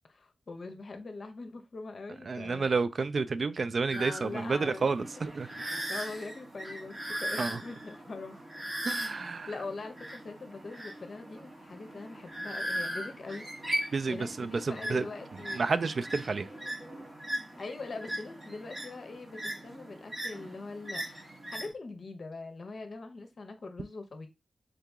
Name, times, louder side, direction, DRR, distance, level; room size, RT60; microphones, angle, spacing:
voice 1, 0.1-3.4 3.9-5.1 5.9-8.4 9.5-13.8 14.0-15.9 17.6-21.0 21.5-24.3, left 3 dB, 55° left, 0.7 m, -42 dB
voice 2, 2.3-5.5 7.4-7.6 8.9-9.5 13.9-15.0 15.5-16.5, right 4 dB, 55° right, 0.3 m, -30 dB
sound 1, 3.9-21.7, equal, 35° right, 2.0 m, -39 dB
3.8 x 2.8 x 3.5 m
wide cardioid pair, 125°, 0 cm